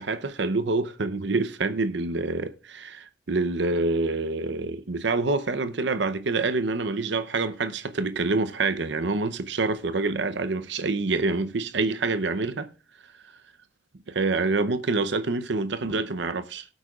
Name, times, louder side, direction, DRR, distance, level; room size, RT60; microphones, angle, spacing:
voice 1, 0.0-12.7 14.1-16.7, right 3 dB, 70° right, 0.7 m, -26 dB
19.0 x 8.3 x 2.4 m
head